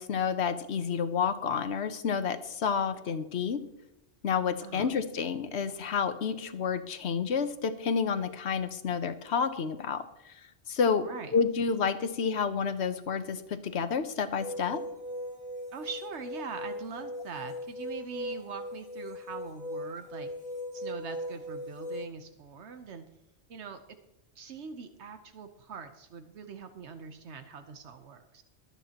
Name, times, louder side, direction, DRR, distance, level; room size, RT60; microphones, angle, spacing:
voice 1, 0.0-3.6 4.2-10.4 10.7-14.8, left 6 dB, 75° left, 10 dB, 1.2 m, -30 dB
voice 2, 4.6-4.9 11.0-11.3 15.7-20.3 20.7-23.0 23.5-23.8 24.3-28.4, right 5 dB, 85° right, 7 dB, 1.2 m, -43 dB
sound 1, 14.4-22.1, left 1 dB, 40° left, 2.1 m, -39 dB
23.5 x 8.8 x 2.9 m, 0.90 s
omnidirectional pair, 1.1 m